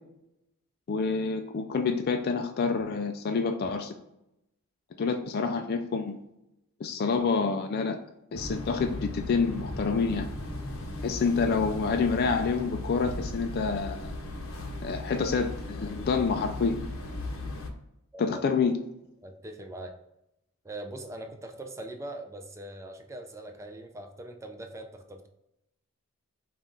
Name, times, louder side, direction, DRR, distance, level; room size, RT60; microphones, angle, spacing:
voice 1, 0.9-3.9 5.0-6.2 6.8-8.0 8.3-10.3 11.0-14.1 14.8-16.8 18.2-18.7, left 5 dB, 45° left, 5 dB, 0.3 m, -28 dB
sound 1, 8.3-17.7, left 1 dB, 65° left, 0.7 m, -37 dB
voice 2, 19.2-19.9 20.6-25.3, right 1 dB, 15° right, 4 dB, 0.5 m, -41 dB
5.4 x 2.4 x 3.8 m, 0.84 s
head